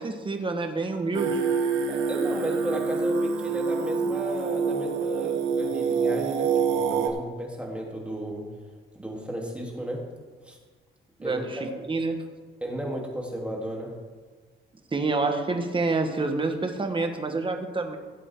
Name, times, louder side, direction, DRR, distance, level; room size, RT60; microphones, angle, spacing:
voice 1, 0.0-1.4 11.2-11.6 11.9-12.2 14.9-18.0, right 3 dB, 25° right, 5 dB, 1.6 m, -27 dB
Singing, 1.1-7.1, right 5 dB, 90° right, 1.4 m, -26 dB
voice 2, 1.9-8.4 8.9-10.0 10.4-10.6 11.2-11.9 12.6-13.9, equal, 5° right, -2 dB, 3.4 m, -34 dB
17.0 x 8.3 x 3.9 m, 1.4 s
cardioid pair, 90°, 20 cm